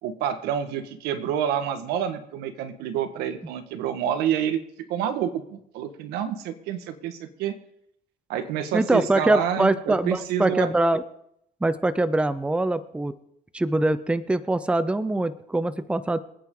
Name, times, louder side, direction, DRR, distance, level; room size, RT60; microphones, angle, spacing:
voice 1, 0.0-4.6 4.9-7.6 8.3-10.7, right 9 dB, 90° right, 9 dB, 1.6 m, -28 dB
voice 2, 8.7-11.0 11.6-13.2 13.5-16.2, right 2 dB, 5° right, 13 dB, 0.7 m, -23 dB
25.0 x 9.1 x 3.9 m, 0.75 s
cardioid pair, 110°, 16 cm